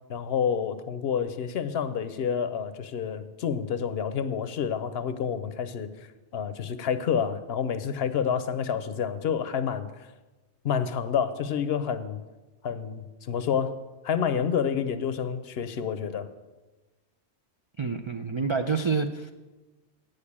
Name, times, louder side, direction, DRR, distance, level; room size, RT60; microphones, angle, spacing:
voice 1, 0.1-5.9 6.3-10.1 10.6-12.2 12.6-13.8 14.0-16.3, left 7 dB, 65° left, 11 dB, 0.8 m, -28 dB
voice 2, 17.8-19.3, right 5 dB, 50° right, 6 dB, 0.3 m, -28 dB
8.9 x 6.7 x 8.5 m, 1.2 s
omnidirectional pair, 1.2 m